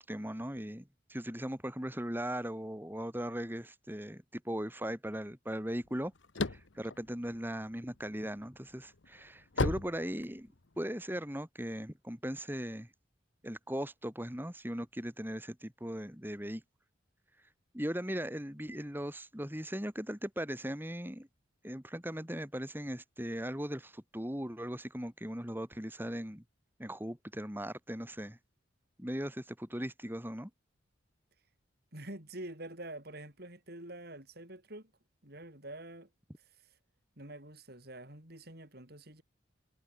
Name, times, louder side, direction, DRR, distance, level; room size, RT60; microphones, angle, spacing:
voice 1, 0.0-6.1 6.5-10.5 10.8-12.9 13.4-16.6 17.7-21.3 21.6-26.4 26.8-28.4 29.0-30.5, equal, 10° right, 4.0 m, -38 dB
sound 1, 5.8-8.0 8.5-10.8, left 3 dB, 75° left, 1.2 m, -34 dB
voice 2, 31.9-34.9 35.2-36.1 37.2-39.2, right 1 dB, 55° right, 5.4 m, -46 dB
head